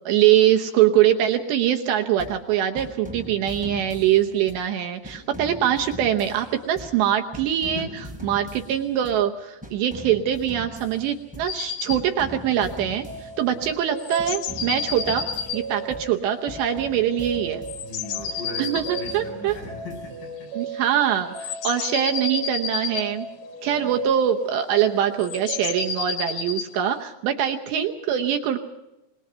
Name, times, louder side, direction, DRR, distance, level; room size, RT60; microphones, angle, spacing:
voice 1, 0.1-7.9 8.2-15.3 15.5-17.6 18.6-19.5 20.6-23.3 23.6-28.6, right 10 dB, 75° right, 4 dB, 2.7 m, -23 dB
sound 1, 2.2-2.5 2.8-4.7 5.0-7.1 7.3-9.3 9.6-11.6 11.9-13.8 14.2-16.2 16.5-18.4 18.8-20.4, equal, ahead, 4.2 m, -41 dB
voice 2, 7.7-8.1 13.5-13.6 17.8-20.5 23.7-23.9, left 2 dB, 40° left, -1 dB, 9.1 m, -38 dB
sound 2, 11.5-12.0 14.0-15.6 17.7-19.2 21.2-23.1 25.2-26.7, left 6 dB, 90° left, 4.2 m, -31 dB
sound 3, 12.6-25.9, right 4 dB, 50° right, 4.2 m, -37 dB
26.0 x 20.0 x 5.6 m, 0.98 s
omnidirectional pair, 6.0 m